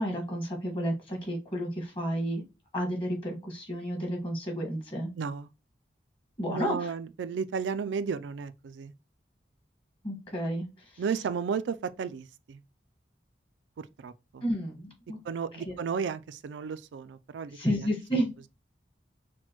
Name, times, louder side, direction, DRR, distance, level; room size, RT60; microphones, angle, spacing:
voice 1, 0.0-2.4 2.7-5.1 6.4-6.9 10.0-10.7 10.9-11.0 14.4-15.2 15.6-15.7 17.5-18.3, equal, 30° left, 1.5 m, -31 dB
voice 2, 5.2-5.5 6.5-8.9 11.0-12.6 13.8-14.4 15.2-17.9, right 6 dB, 85° right, 0.3 m, -34 dB
6.0 x 2.2 x 2.9 m
head